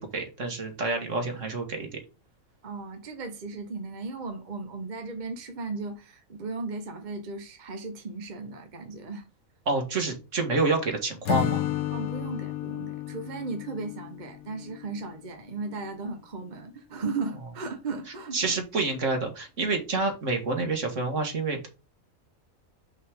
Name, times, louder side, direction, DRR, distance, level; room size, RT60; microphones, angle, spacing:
voice 1, 0.0-2.0 9.7-11.7 18.3-21.7, right 3 dB, 60° right, 2.1 m, -28 dB
voice 2, 2.6-9.2 11.9-18.6, right 3 dB, 35° right, 1.0 m, -36 dB
Acoustic guitar / Strum, 11.2-15.2, left 12 dB, 85° left, 1.2 m, -32 dB
5.8 x 5.3 x 3.6 m
omnidirectional pair, 1.5 m